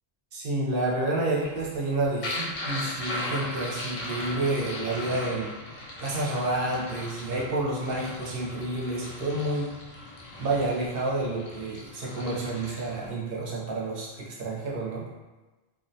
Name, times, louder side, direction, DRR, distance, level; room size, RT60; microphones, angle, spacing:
voice 1, 0.3-5.5 6.0-9.7 10.4-15.0, right 2 dB, 70° right, -4 dB, 0.8 m, -29 dB
sound 1, 1.3-13.1, left 1 dB, 55° left, 0.6 m, -38 dB
2.4 x 2.1 x 2.6 m, 1.2 s
omnidirectional pair, 1.0 m